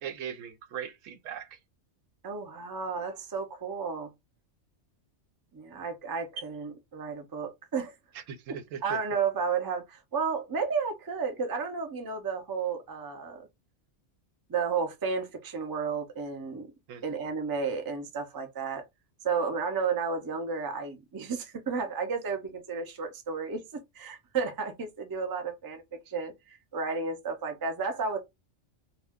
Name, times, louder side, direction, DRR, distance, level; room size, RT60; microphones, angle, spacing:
voice 1, 0.0-1.6 8.1-9.0 16.9-17.0, right 8 dB, 90° right, 1.0 m, -39 dB
voice 2, 2.2-4.1 5.5-7.9 8.8-13.5 14.5-16.7 17.0-18.8 19.2-28.2, right 5 dB, 35° right, 0.3 m, -32 dB
2.4 x 2.2 x 3.5 m
omnidirectional pair, 1.3 m